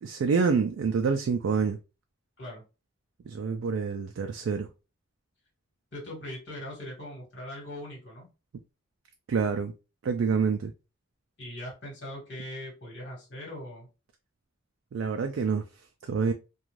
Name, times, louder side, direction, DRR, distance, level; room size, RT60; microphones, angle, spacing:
voice 1, 0.0-1.8 3.3-4.7 9.3-9.7 10.0-10.7 14.9-15.6 16.0-16.3, right 5 dB, 70° right, 0.3 m, -27 dB
voice 2, 5.9-8.3 11.4-13.9, left 1 dB, 55° left, 1.4 m, -40 dB
2.5 x 2.3 x 3.0 m
head